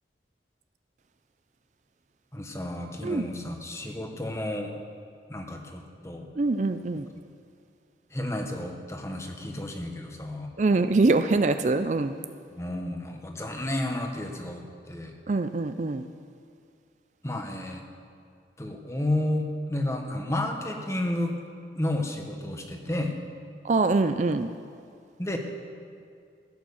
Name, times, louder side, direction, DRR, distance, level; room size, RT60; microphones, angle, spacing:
voice 1, 2.3-4.7 5.3-6.3 8.1-10.5 12.6-15.1 17.2-17.8 18.6-21.3 21.7-23.2 25.2-25.4, left 1 dB, 15° left, 3 dB, 1.2 m, -31 dB
voice 2, 6.4-7.1 10.6-12.2 15.3-16.1 23.6-24.5, right 3 dB, 40° right, 9 dB, 0.4 m, -24 dB
15.5 x 8.9 x 7.1 m, 2.3 s
head